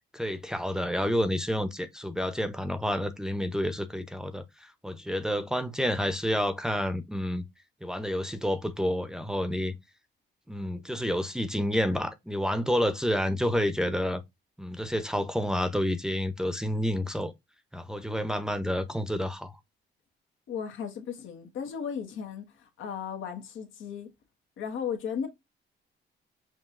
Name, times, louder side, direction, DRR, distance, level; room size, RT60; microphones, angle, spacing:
voice 1, 0.1-4.4 4.8-7.4 7.8-9.7 10.5-14.2 14.6-17.3 17.7-19.5, equal, 5° right, 0.6 m, -29 dB
voice 2, 20.5-24.1 24.6-25.3, left 7 dB, 85° left, 1.3 m, -35 dB
5.2 x 2.7 x 2.4 m
cardioid pair, 90°, 20 cm